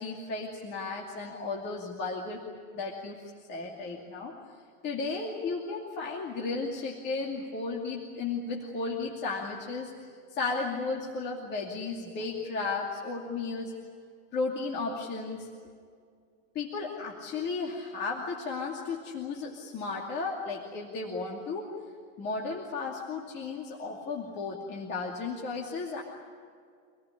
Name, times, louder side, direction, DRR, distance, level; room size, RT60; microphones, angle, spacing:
voice 1, 0.0-2.4 2.7-3.2 3.5-4.4 4.8-9.9 10.3-13.7 14.3-15.5 16.5-21.7 22.2-26.0, left 4 dB, 25° left, -1 dB, 2.5 m, -34 dB
27.0 x 19.0 x 10.0 m, 2.1 s
supercardioid pair, 170°, 39 cm